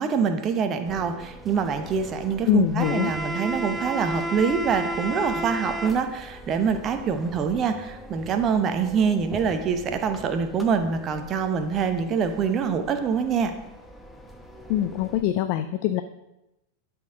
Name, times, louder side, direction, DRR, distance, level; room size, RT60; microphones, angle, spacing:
voice 1, 0.0-13.5, right 6 dB, 30° right, 8 dB, 0.9 m, -25 dB
sound 1, 0.9-15.2, right 1 dB, ahead, 0.9 m, -36 dB
voice 2, 2.5-3.1 14.7-16.0, left 12 dB, 45° left, 9 dB, 0.4 m, -23 dB
11.5 x 4.5 x 5.0 m, 0.94 s
figure-of-eight pair, 90°, 0 cm